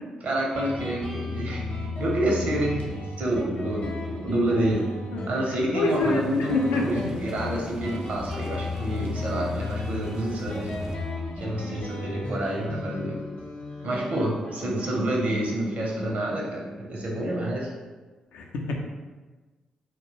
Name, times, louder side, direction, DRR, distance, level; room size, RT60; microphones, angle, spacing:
voice 1, 0.2-4.9 5.3-10.7 11.4-13.2 13.8-17.7, right 1 dB, 60° right, -2 dB, 0.7 m, -28 dB
Guitar, 0.6-17.8, left 2 dB, 55° left, 0.7 m, -34 dB
voice 2, 5.1-7.1 18.3-18.8, left 3 dB, 75° left, 1 dB, 0.3 m, -28 dB
sound 1, 5.9-11.0, right 1 dB, 20° right, 0.3 m, -44 dB
2.2 x 2.1 x 3.1 m, 1.3 s
hypercardioid pair, 40°, 3 cm